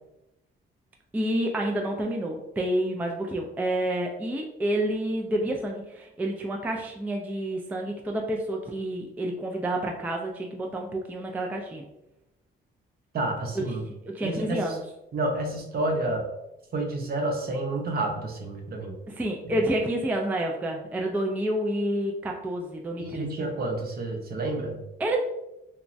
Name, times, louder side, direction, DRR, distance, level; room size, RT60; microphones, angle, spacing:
voice 1, 1.1-11.9 14.1-14.8 19.1-23.3 25.0-25.2, right 1 dB, 10° right, 1 dB, 0.3 m, -29 dB
voice 2, 13.1-13.8 14.2-14.7 15.1-16.3 16.7-19.0 19.4-19.6 23.0-24.8, right 2 dB, 50° right, 2 dB, 0.7 m, -29 dB
3.0 x 2.2 x 2.5 m, 0.91 s
cardioid pair, 90°, 20 cm